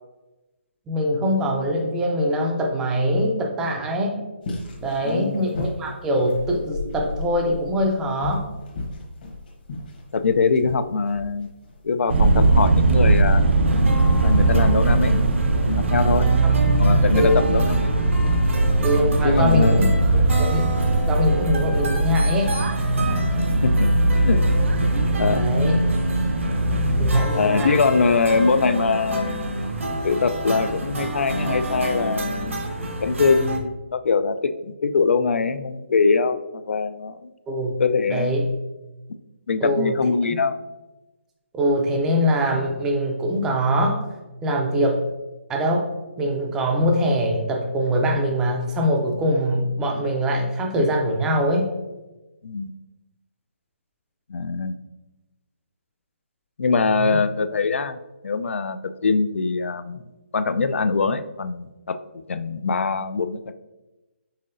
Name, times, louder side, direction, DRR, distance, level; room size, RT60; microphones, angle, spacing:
voice 1, 0.9-4.2 4.8-8.5 16.4-16.5 17.1-17.6 18.8-20.8 21.1-22.5 25.3-25.8 27.0-27.7 37.5-37.7 38.1-38.4 39.6-40.0 41.5-44.0 44.4-45.0 45.5-45.9 46.2-51.7 56.9-57.2, equal, 5° right, 1 dB, 0.4 m, -23 dB
sound 1, 4.4-13.5, left 2 dB, 45° left, 1.0 m, -35 dB
voice 2, 5.0-5.5 10.1-11.5 11.8-13.4 14.2-15.2 15.7-16.3 16.8-18.0 18.7-18.8 19.2-20.0 23.6-23.9 24.3-24.4 25.2-25.4 27.3-29.6 30.0-32.6 33.0-34.4 34.7-37.3 37.8-38.3 39.5-40.6 52.4-52.7 54.3-54.7 56.6-58.0 58.2-60.0 60.3-62.0 62.3-63.5, left 4 dB, 75° left, 11 dB, 0.3 m, -22 dB
sound 2, 12.1-27.2, right 2 dB, 60° right, 0.5 m, -20 dB
sound 3, 13.6-33.6, right 1 dB, 80° right, 0.8 m, -29 dB
5.6 x 3.7 x 2.5 m, 1.1 s
hypercardioid pair, 165°, 7 cm